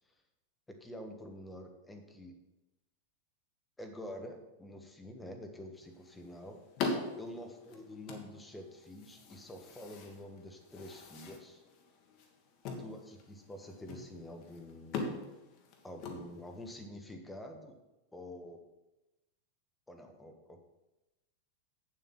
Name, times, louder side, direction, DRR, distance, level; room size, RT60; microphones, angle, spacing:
voice 1, 0.8-2.3 3.8-6.6 7.1-11.6 12.8-15.1 15.8-17.7 18.1-18.6 19.9-20.6, left 1 dB, 10° left, 5 dB, 1.4 m, -47 dB
sound 1, 5.8-16.8, left 3 dB, 40° left, 1.5 m, -43 dB
8.3 x 7.1 x 5.7 m, 0.99 s
figure-of-eight pair, 90°, 0 cm